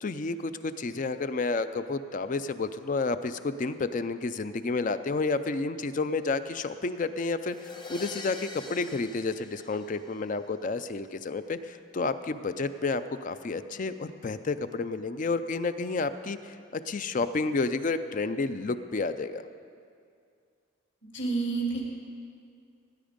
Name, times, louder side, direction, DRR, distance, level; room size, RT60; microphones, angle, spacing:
voice 1, 0.0-19.5, left 3 dB, 40° left, 11 dB, 0.4 m, -30 dB
sound 1, 7.4-10.4, left 3 dB, 20° left, 0.9 m, -44 dB
voice 2, 21.1-21.9, right 4 dB, 60° left, -2 dB, 2.8 m, -29 dB
17.5 x 9.5 x 5.2 m, 2.3 s
head